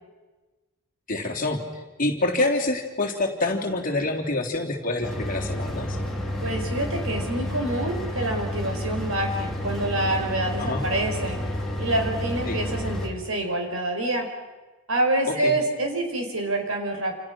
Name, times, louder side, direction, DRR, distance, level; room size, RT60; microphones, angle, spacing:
voice 1, 1.1-1.6 2.0-6.0 10.6-10.8 12.5-12.6 15.3-15.5, left 2 dB, 35° left, 1 dB, 3.3 m, -26 dB
sound 1, 5.0-13.1, left 1 dB, ahead, 3.9 m, -30 dB
voice 2, 6.4-11.4 11.8-14.3 14.9-17.2, right 1 dB, 65° right, 3 dB, 5.2 m, -27 dB
29.0 x 28.5 x 6.2 m, 1.2 s
head